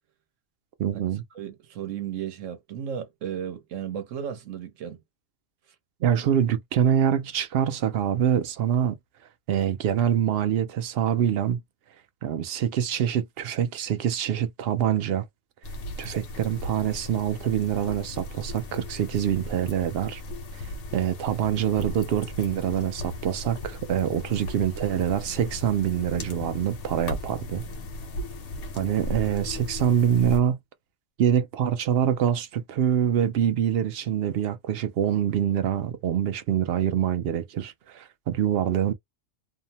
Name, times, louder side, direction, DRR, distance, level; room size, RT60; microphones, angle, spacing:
voice 1, 0.8-1.2 6.0-9.0 9.5-11.6 12.2-15.3 16.0-20.2 20.6-20.7 20.9-27.6 28.7-30.6 31.2-38.9, right 9 dB, 65° right, 0.7 m, -25 dB
voice 2, 1.3-5.0, right 9 dB, 90° right, 1.1 m, -34 dB
sound 1, 15.6-30.4, left 1 dB, 70° left, 1.0 m, -37 dB
2.7 x 2.0 x 2.7 m
omnidirectional pair, 1.3 m